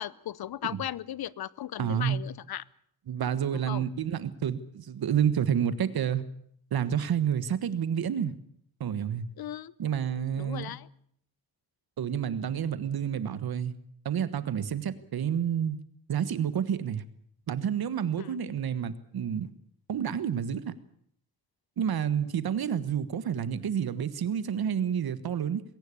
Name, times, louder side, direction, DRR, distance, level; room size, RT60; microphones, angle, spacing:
voice 1, 0.0-2.6 3.7-3.9 9.4-9.7 10.4-10.9 18.2-18.3, left 11 dB, 80° left, 21 dB, 0.8 m, -37 dB
voice 2, 1.8-2.2 3.1-6.2 6.7-8.3 8.8-9.2 9.8-10.8 12.0-13.7 14.0-15.8 16.1-17.0 17.5-19.5 19.9-20.7 21.8-25.6, right 8 dB, 75° right, 14 dB, 1.5 m, -29 dB
21.0 x 17.5 x 8.4 m, 0.66 s
wide cardioid pair, 140°, 37 cm